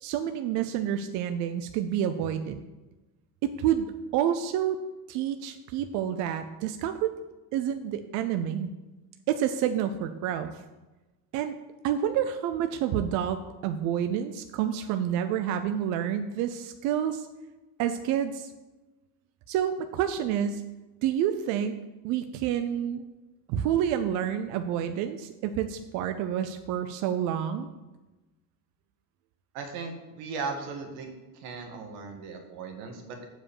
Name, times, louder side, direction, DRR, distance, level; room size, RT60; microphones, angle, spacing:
voice 1, 0.0-2.6 3.6-3.9 4.1-4.8 5.1-7.2 7.5-8.7 9.3-10.6 11.3-11.5 11.8-17.3 17.8-18.5 19.5-20.6 21.0-21.7 22.0-23.0 23.5-27.7, right 9 dB, 45° right, 8 dB, 0.4 m, -28 dB
voice 2, 29.5-31.1 31.4-33.2, right 4 dB, 75° right, 3 dB, 1.8 m, -37 dB
7.5 x 4.8 x 7.0 m, 1.1 s
cardioid pair, 180°, 43 cm